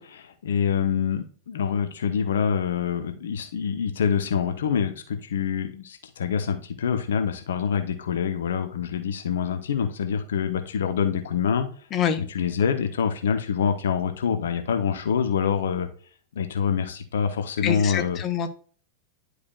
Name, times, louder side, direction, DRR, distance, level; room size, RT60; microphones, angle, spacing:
voice 1, 0.0-11.7 12.2-15.9 16.3-18.2, left 7 dB, 65° left, 8 dB, 0.8 m, -26 dB
voice 2, 11.9-12.2 17.6-18.5, left 8 dB, 30° left, 8 dB, 0.9 m, -25 dB
10.5 x 4.8 x 2.3 m, 0.42 s
figure-of-eight pair, 90°, 0 cm